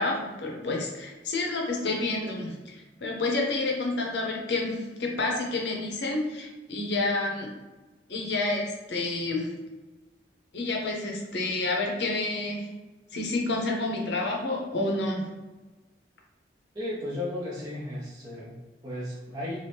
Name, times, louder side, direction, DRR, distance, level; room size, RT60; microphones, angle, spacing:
voice 1, 0.0-7.5 8.1-9.5 10.5-12.7 13.1-15.3, left 2 dB, 70° left, 0 dB, 0.7 m, -29 dB
voice 2, 16.7-19.7, left 1 dB, 20° right, -7 dB, 0.5 m, -35 dB
2.8 x 2.5 x 3.3 m, 1.2 s
head